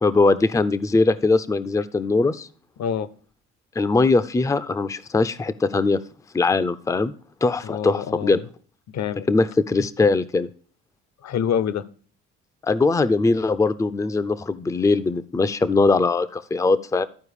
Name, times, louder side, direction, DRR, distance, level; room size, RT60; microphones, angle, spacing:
voice 1, 0.0-2.5 3.8-6.0 6.3-7.1 7.4-8.4 9.3-10.5 12.6-17.0, left 3 dB, 10° left, 14 dB, 0.5 m, -21 dB
voice 2, 7.6-8.4 8.9-9.3 11.2-11.8, left 8 dB, 50° left, 17 dB, 0.7 m, -26 dB
12.5 x 4.6 x 4.9 m, 0.43 s
hypercardioid pair, 60°, 36 cm